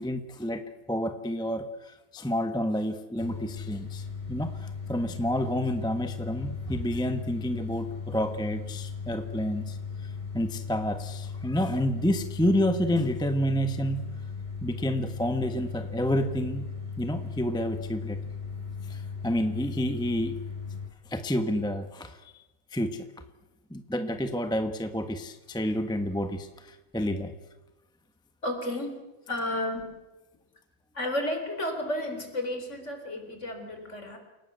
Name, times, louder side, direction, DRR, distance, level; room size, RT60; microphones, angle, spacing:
voice 1, 0.0-9.8 10.3-14.0 14.6-16.7 17.0-18.2 18.9-20.4 21.1-22.4 22.7-23.1 23.7-27.3, equal, 5° left, 8 dB, 1.1 m, -29 dB
sound 1, 3.2-20.9, left 5 dB, 25° left, 5.2 m, -37 dB
voice 2, 28.4-28.9 29.3-29.9 30.9-34.2, left 1 dB, 45° left, 5 dB, 4.5 m, -32 dB
29.0 x 18.0 x 8.1 m, 1.0 s
omnidirectional pair, 1.7 m